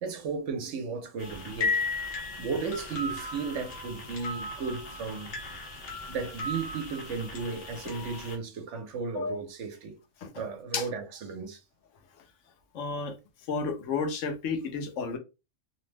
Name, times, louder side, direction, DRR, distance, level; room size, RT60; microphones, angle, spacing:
voice 1, 0.0-2.0 2.3-5.3 5.9-10.0 10.4-11.6, right 5 dB, 70° right, 1.0 m, -35 dB
sound 1, 1.2-8.4, left 3 dB, 55° left, 0.9 m, -36 dB
voice 2, 12.7-13.1 13.5-15.2, left 4 dB, 80° left, 1.0 m, -31 dB
2.8 x 2.0 x 3.2 m
omnidirectional pair, 1.3 m